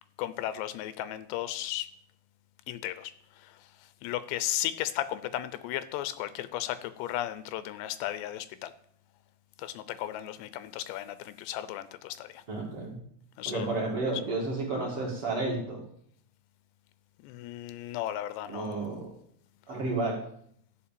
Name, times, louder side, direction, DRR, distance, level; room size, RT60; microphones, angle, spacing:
voice 1, 0.2-1.9 2.7-3.1 3.4-3.5 4.0-8.7 9.6-12.4 13.4-13.8 17.2-18.8, left 13 dB, 85° left, 14 dB, 2.8 m, -35 dB
voice 2, 12.5-13.0 13.5-15.8 18.5-19.1 19.7-20.2, right 2 dB, 40° right, -3 dB, 2.6 m, -31 dB
13.0 x 4.9 x 8.5 m, 0.67 s
omnidirectional pair, 5.0 m